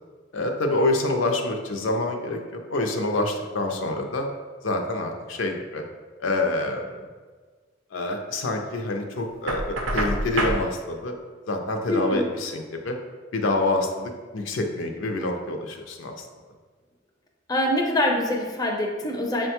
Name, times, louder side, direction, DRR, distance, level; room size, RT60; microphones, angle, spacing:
voice 1, 0.3-4.3 4.6-5.8 6.2-6.9 7.9-11.1 11.5-13.0 13.3-16.2, left 2 dB, 75° left, 4 dB, 0.4 m, -27 dB
Knock, 9.5-10.6, right 1 dB, 80° right, 0.5 m, -26 dB
voice 2, 11.9-12.2 17.5-19.5, left 1 dB, 20° left, 0 dB, 0.4 m, -24 dB
6.1 x 2.2 x 2.8 m, 1.5 s
head